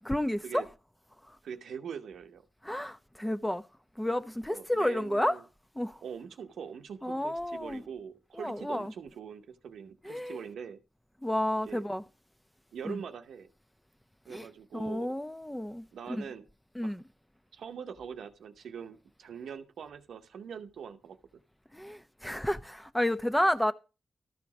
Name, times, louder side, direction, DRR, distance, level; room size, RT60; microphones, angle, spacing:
voice 1, 0.0-0.6 2.6-3.6 4.0-5.4 5.8-6.0 7.0-7.8 8.4-8.9 10.0-10.4 11.2-12.0 12.8-13.0 14.3-14.5 14.7-15.9 16.2-16.3 16.8-17.0 21.7-23.7, left 1 dB, 5° left, 0.7 m, -31 dB
voice 2, 1.4-2.4 4.5-5.4 6.0-10.8 11.7-11.8 12.7-13.5 14.3-15.1 15.9-16.5 16.8-16.9 17.5-21.2, right 7 dB, 85° right, 0.8 m, -43 dB
12.5 x 4.9 x 6.0 m
cardioid pair, 70°, 0 cm